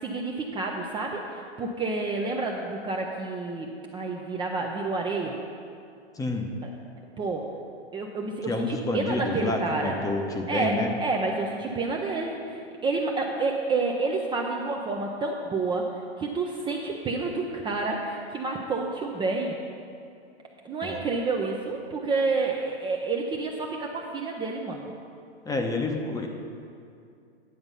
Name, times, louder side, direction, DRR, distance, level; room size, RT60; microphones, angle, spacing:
voice 1, 0.0-5.4 7.2-7.5 7.9-10.0 10.5-19.5 20.6-24.9, right 3 dB, 15° right, 0 dB, 0.6 m, -29 dB
voice 2, 6.2-6.5 8.5-10.9 20.8-21.0 25.4-26.3, left 3 dB, 10° left, 3 dB, 0.8 m, -29 dB
10.0 x 6.9 x 5.5 m, 2.4 s
hypercardioid pair, 120°, 32 cm